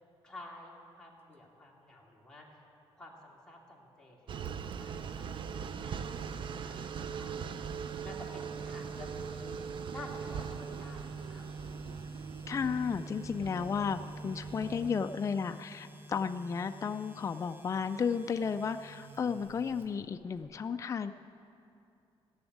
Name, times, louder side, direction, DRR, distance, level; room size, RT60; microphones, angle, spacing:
voice 1, 0.2-2.7 3.0-7.7 8.0-11.4, left 1 dB, 5° left, -4 dB, 2.6 m, -51 dB
sound 1, 4.3-14.9, right 7 dB, 55° right, 0.5 m, -41 dB
sound 2, 4.5-20.4, right 3 dB, 20° right, 1.0 m, -47 dB
voice 2, 12.5-21.1, left 6 dB, 30° left, 9 dB, 0.4 m, -33 dB
15.5 x 7.1 x 9.4 m, 2.6 s
cardioid pair, 115°, 10 cm